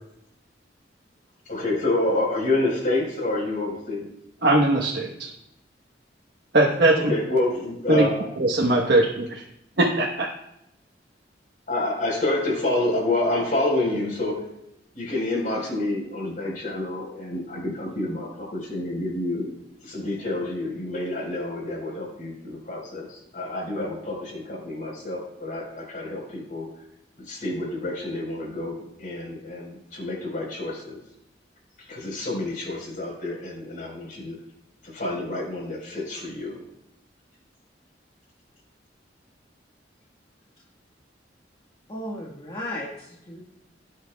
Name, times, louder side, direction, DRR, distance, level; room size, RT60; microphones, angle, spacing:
voice 1, 1.5-4.1 7.1-8.1 11.7-14.4 14.9-19.5 19.9-26.7 27.3-31.0 31.8-34.4 34.9-36.6, left 2 dB, 50° left, -1 dB, 4.3 m, -28 dB
voice 2, 4.4-5.3 6.5-7.1 7.9-8.1 8.4-9.4 9.8-10.3, right 2 dB, 65° right, -3 dB, 1.1 m, -20 dB
voice 3, 41.9-43.4, left 1 dB, 30° left, -3 dB, 1.5 m, -35 dB
19.0 x 9.0 x 2.3 m, 0.84 s
head